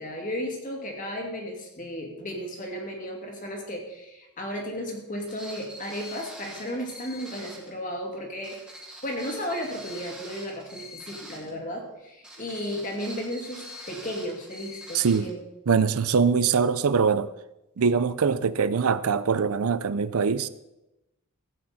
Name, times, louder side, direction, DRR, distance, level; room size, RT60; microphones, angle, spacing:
voice 1, 0.0-8.6 9.0-15.4, equal, 35° left, 2.4 m, -34 dB
sound 1, 5.3-7.7 8.4-11.5 12.2-15.3, equal, 5° right, 1.9 m, -44 dB
voice 2, 14.9-15.3 15.7-17.3 17.8-20.5, right 5 dB, 80° right, 0.5 m, -23 dB
15.5 x 8.7 x 4.2 m
head